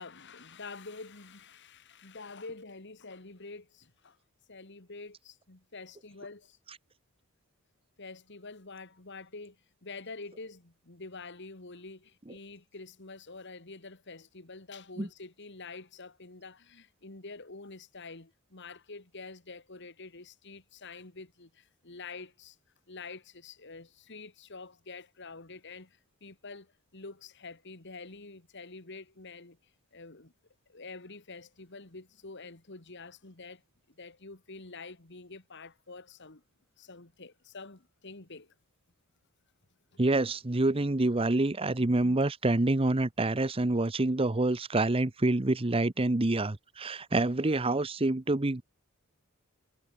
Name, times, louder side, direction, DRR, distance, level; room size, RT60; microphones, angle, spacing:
voice 1, 0.0-4.2 4.5-6.6 8.0-22.6 22.9-29.6 29.9-30.3 30.7-33.6 33.9-36.4 36.8-38.5, left 3 dB, 55° left, 2.1 m, -47 dB
voice 2, 40.0-48.6, right 2 dB, 25° right, 0.8 m, -27 dB
head